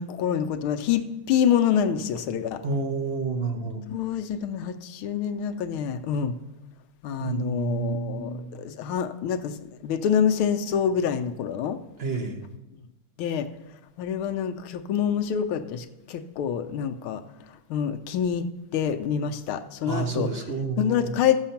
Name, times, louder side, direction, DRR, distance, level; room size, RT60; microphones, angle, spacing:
voice 1, 0.0-2.6 3.9-6.4 7.0-11.8 13.2-13.5 14.0-17.2 17.7-18.5 18.7-20.3 20.8-21.4, left 8 dB, 80° left, 8 dB, 1.5 m, -26 dB
voice 2, 2.6-3.8 7.2-8.6 12.0-12.4 19.8-21.1, right 4 dB, 40° right, 3 dB, 0.9 m, -29 dB
14.5 x 7.3 x 5.7 m, 1.0 s
omnidirectional pair, 2.3 m